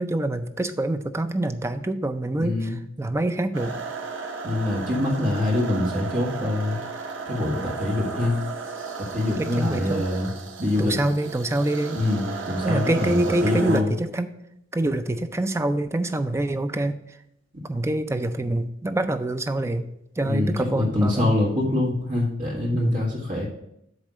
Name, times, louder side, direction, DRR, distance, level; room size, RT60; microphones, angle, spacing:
voice 1, 0.0-2.7 3.0-3.8 9.4-10.1 10.8-12.0 12.6-14.3 14.7-17.0 17.6-19.9 20.2-21.4 22.7-23.0, right 1 dB, 15° right, 9 dB, 0.4 m, -25 dB
voice 2, 2.4-2.8 4.4-6.8 7.3-8.4 9.0-10.3 10.6-10.9 11.9-13.9 20.2-23.5, left 2 dB, 45° right, -3 dB, 1.8 m, -24 dB
sound 1, 3.5-13.8, right 4 dB, 85° right, 0.9 m, -34 dB
8.1 x 3.3 x 6.1 m, 0.78 s
head